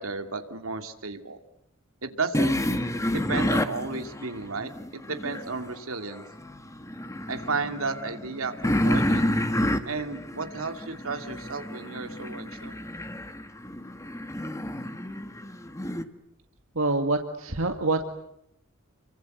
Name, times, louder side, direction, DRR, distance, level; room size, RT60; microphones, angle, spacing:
voice 1, 0.0-1.4 2.0-2.6 3.1-6.2 7.3-9.3 9.9-12.8, right 4 dB, 85° right, 7 dB, 2.6 m, -33 dB
sound 1, 2.3-5.6 6.1-16.0, left 1 dB, 15° left, 1.6 m, -30 dB
voice 2, 16.8-18.0, right 2 dB, 70° right, 5 dB, 2.0 m, -26 dB
29.5 x 24.5 x 8.0 m, 0.76 s
head